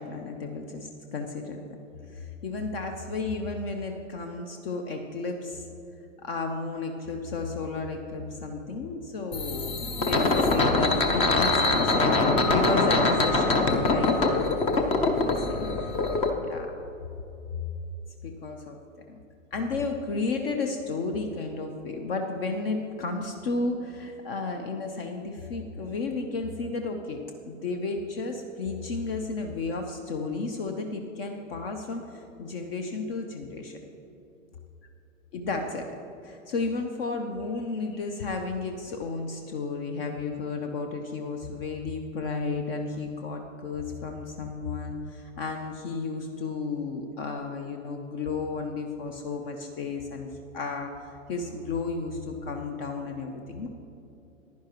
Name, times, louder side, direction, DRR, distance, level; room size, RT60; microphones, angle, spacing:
voice 1, 0.0-1.6 2.1-5.7 6.2-14.1 15.0-15.8 16.4-16.7 17.5-17.6 18.2-18.8 19.1-19.2 19.5-33.8 35.3-35.9 36.2-50.3 50.5-53.7, left 3 dB, 45° left, 4 dB, 0.9 m, -33 dB
sound 1, 9.3-16.3, left 3 dB, 15° left, 0.5 m, -24 dB
15.0 x 10.5 x 3.0 m, 2.9 s
hypercardioid pair, 115°, 40 cm